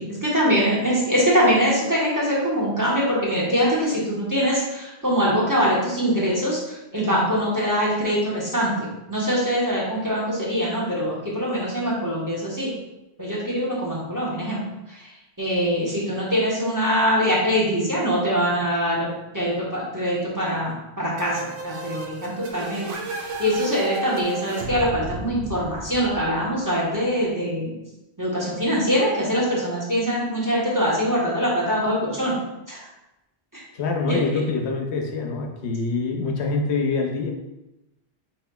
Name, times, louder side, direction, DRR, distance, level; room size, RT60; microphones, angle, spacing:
voice 1, 0.0-12.7 13.2-14.6 14.9-19.1 19.3-27.7 28.2-32.4 32.7-32.9 33.5-33.6 34.1-34.2, equal, 20° right, -6 dB, 1.0 m, -23 dB
sound 1, 21.2-26.8, right 3 dB, 60° right, 0.8 m, -33 dB
voice 2, 33.7-37.3, left 4 dB, 90° left, 2 dB, 1.0 m, -25 dB
4.3 x 4.1 x 2.2 m, 0.95 s
omnidirectional pair, 1.1 m